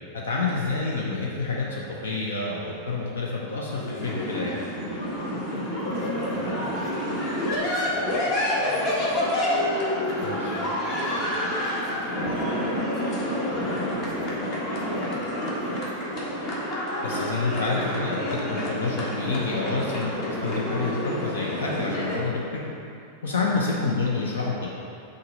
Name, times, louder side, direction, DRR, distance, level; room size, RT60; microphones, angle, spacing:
voice 1, 0.1-4.6 10.2-10.4 17.0-22.6 23.2-24.7, left 3 dB, 65° left, -3 dB, 0.8 m, -28 dB
sound 1, 3.7-22.2, left 1 dB, 40° left, 1.5 m, -28 dB
voice 2, 5.8-9.3 9.8-13.2 13.5-14.4 14.8-16.2 23.4-23.6, equal, 15° left, -5 dB, 1.6 m, -41 dB
6.6 x 4.0 x 5.4 m, 2.6 s
figure-of-eight pair, 90°, 0 cm